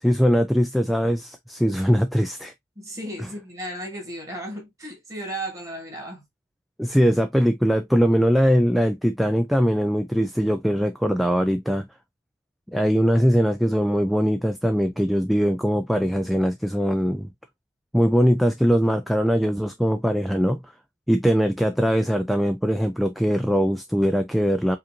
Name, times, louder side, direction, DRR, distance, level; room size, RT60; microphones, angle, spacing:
voice 1, 0.0-2.5 6.8-11.9 12.7-17.3 17.9-20.6 21.1-24.8, equal, ahead, 0.3 m, -21 dB
voice 2, 2.8-6.2, right 1 dB, 20° right, 1.8 m, -34 dB
5.1 x 2.5 x 2.8 m
head